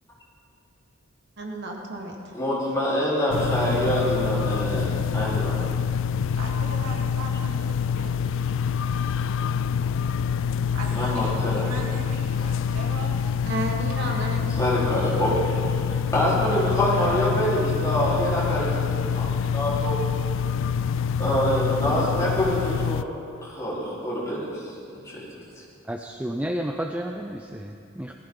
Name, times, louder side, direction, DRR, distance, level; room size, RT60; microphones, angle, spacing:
voice 1, 1.4-2.2 13.5-14.5 16.6-16.9, right 1 dB, 50° right, 0 dB, 1.7 m, -32 dB
voice 2, 2.3-5.6 10.9-11.6 14.5-20.1 21.2-23.0 23.4-24.7 25.0-25.2, equal, 15° left, -8 dB, 4.2 m, -26 dB
sound 1, 3.3-23.0, left 7 dB, 60° left, 0.4 m, -26 dB
voice 3, 6.3-8.8 10.7-13.3 25.5-25.6, right 1 dB, 85° right, -2 dB, 2.8 m, -39 dB
voice 4, 25.9-28.1, right 1 dB, 5° right, 3 dB, 0.5 m, -31 dB
19.5 x 15.0 x 3.9 m, 2.5 s
head